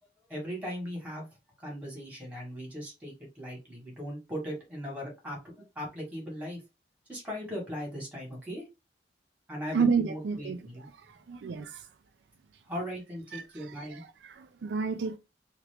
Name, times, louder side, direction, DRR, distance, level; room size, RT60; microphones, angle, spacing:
voice 1, 0.3-1.3 1.6-6.6 7.1-8.6 9.5-10.9 12.7-14.0, equal, 10° right, 1.5 m, -38 dB
voice 2, 9.7-10.6 11.3-11.8 13.3-13.4 14.2-15.2, right 5 dB, 80° right, 0.4 m, -29 dB
2.8 x 2.5 x 3.3 m
head